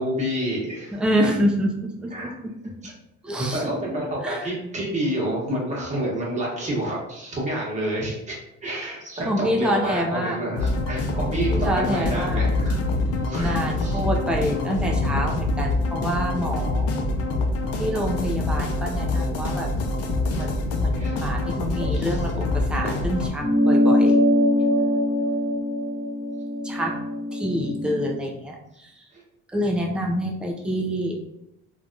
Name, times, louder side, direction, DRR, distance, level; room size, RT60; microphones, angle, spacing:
voice 1, 0.0-1.0 2.1-2.3 2.8-2.9 3.3-12.8 13.2-14.0 20.9-21.2 21.8-22.2 22.8-23.0 29.1-29.2, right 1 dB, 25° right, -4 dB, 1.1 m, -29 dB
voice 2, 0.9-2.5 3.2-4.5 9.2-10.4 11.5-12.4 13.3-16.9 17.8-19.7 20.4-20.5 20.8-24.2 26.6-27.0 27.3-28.9 29.5-31.2, equal, 5° right, 0 dB, 0.4 m, -27 dB
sound 1, 10.6-23.3, left 2 dB, 55° left, 0.5 m, -25 dB
sound 2, 23.4-28.2, left 1 dB, 80° left, 0.9 m, -22 dB
3.2 x 2.4 x 2.5 m, 0.85 s
cardioid pair, 115°, 29 cm